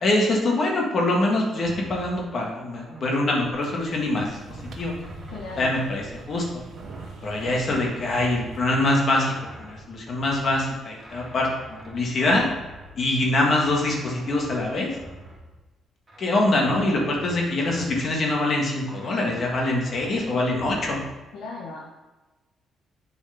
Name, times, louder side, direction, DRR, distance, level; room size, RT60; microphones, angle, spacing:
voice 1, 0.0-4.4 4.8-4.9 5.6-6.6 7.2-12.4 13.0-14.9 16.2-21.0, left 2 dB, 50° left, -1 dB, 1.6 m, -24 dB
sound 1, 1.6-3.9 4.2-15.7 16.1-18.3 18.8-21.0, right 1 dB, 20° right, 2.6 m, -45 dB
sound 2, 3.6-8.6, right 4 dB, 65° right, 1.0 m, -44 dB
voice 2, 5.3-5.7 21.3-21.8, left 3 dB, 80° left, -3 dB, 1.2 m, -36 dB
7.1 x 4.7 x 5.8 m, 1.1 s
cardioid pair, 90°, 0 cm